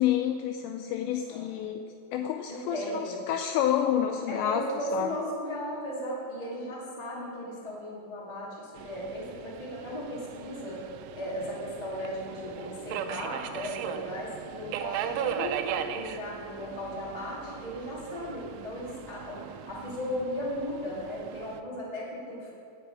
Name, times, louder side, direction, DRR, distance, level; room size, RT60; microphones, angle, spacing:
voice 1, 0.0-1.8 2.1-4.7 4.9-5.1, left 10 dB, 85° left, 4 dB, 2.5 m, -29 dB
voice 2, 2.5-3.2 4.3-10.8 11.1-15.6 15.9-22.5, equal, 30° left, -6 dB, 0.6 m, -36 dB
Subway metro underground, 8.8-21.6, right 8 dB, 85° right, 3.0 m, -38 dB
17.5 x 6.2 x 4.8 m, 2.6 s
omnidirectional pair, 5.5 m